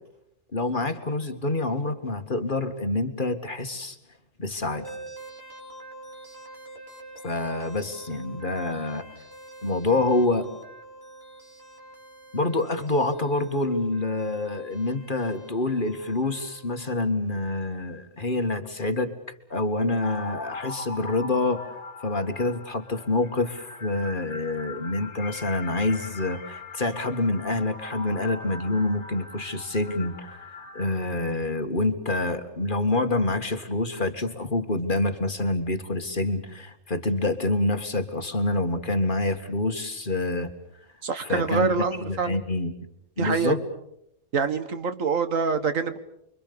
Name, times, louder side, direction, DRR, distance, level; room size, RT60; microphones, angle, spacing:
voice 1, 0.5-4.0 4.4-4.9 7.2-9.0 9.6-10.5 12.3-19.1 19.5-21.6 22.0-40.5 41.2-41.7 42.1-42.7 43.2-43.6, left 2 dB, 40° left, 7 dB, 2.0 m, -27 dB
sound 1, 4.6-16.9, right 1 dB, 50° right, 4.4 m, -46 dB
sound 2, 20.0-31.0, left 3 dB, 60° left, 2.0 m, -41 dB
voice 2, 41.0-42.4 43.2-43.5 44.3-46.0, right 5 dB, 80° right, 10 dB, 1.9 m, -25 dB
29.5 x 24.0 x 6.9 m, 0.79 s
omnidirectional pair, 1.3 m